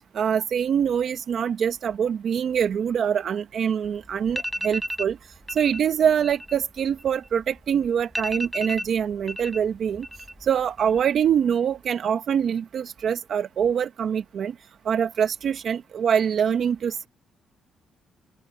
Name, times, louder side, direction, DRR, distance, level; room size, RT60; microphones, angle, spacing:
voice 1, 0.1-5.2 5.5-10.1 10.4-14.5 14.8-17.1, right 8 dB, 60° right, 1.1 m, -24 dB
sound 1, 3.8-3.9 4.3-5.1 5.5-5.8 6.1-7.6 7.8-7.9 8.1-9.6 9.9-10.5 10.8-11.3, equal, 5° right, 4.3 m, -32 dB
open air
cardioid pair, 90°, 0 cm